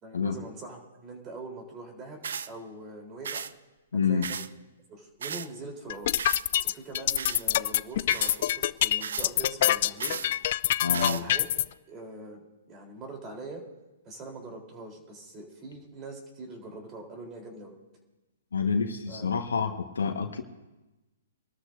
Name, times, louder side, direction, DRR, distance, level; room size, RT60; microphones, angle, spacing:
voice 1, 0.0-3.4 4.1-4.4 4.9-6.1 6.6-10.2 10.9-11.5 11.9-12.4 12.7-13.6 14.0-17.8 19.1-19.4, right 2 dB, 25° right, 1 dB, 3.7 m, -43 dB
sound 1, 2.2-2.5 3.2-3.5 4.2-4.5 5.2-5.5 6.2-6.4 7.2-7.4 8.1-8.4 9.0-9.3 10.0-10.3 10.9-11.2, right 7 dB, 75° right, 0.6 m, -35 dB
voice 2, 3.9-4.3 10.8-11.2 18.5-20.4, left 5 dB, 90° left, 3 dB, 1.4 m, -28 dB
sound 2, 5.9-11.6, left 12 dB, 55° left, 0.4 m, -25 dB
25.5 x 13.0 x 2.7 m, 1.1 s
hypercardioid pair, 140°, 0 cm